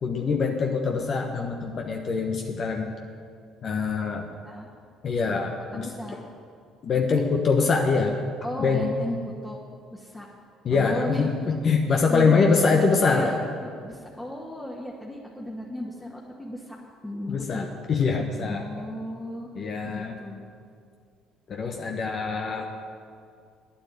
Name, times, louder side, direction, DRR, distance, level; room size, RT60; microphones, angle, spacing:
voice 1, 0.0-2.9 3.6-4.3 5.0-5.9 6.1-6.2 6.8-8.1 8.6-8.9 10.6-13.3 17.3-18.9 19.5-20.1 21.5-22.7, left 4 dB, 50° left, 2 dB, 1.2 m, -24 dB
voice 2, 5.7-6.3 8.4-9.6 9.9-10.3 10.7-11.3 12.1-13.3 13.6-16.8 17.0-17.7 18.4-20.4, left 1 dB, 15° left, -4 dB, 2.0 m, -35 dB
9.8 x 8.8 x 8.5 m, 2.3 s
hypercardioid pair, 55°, 0 cm